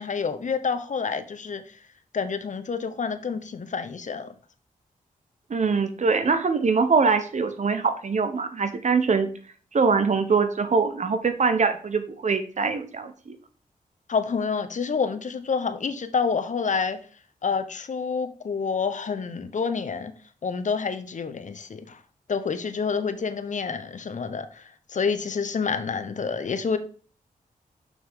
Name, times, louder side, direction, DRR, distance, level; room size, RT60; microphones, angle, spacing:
voice 1, 0.0-1.8 2.1-4.4 14.1-17.0 17.4-20.1 20.4-22.0 22.3-26.8, left 5 dB, 60° left, 10 dB, 0.9 m, -28 dB
voice 2, 5.5-9.3 9.7-13.4, right 5 dB, 55° right, 9 dB, 1.1 m, -23 dB
6.6 x 6.1 x 3.7 m, 0.40 s
cardioid pair, 65°, 15 cm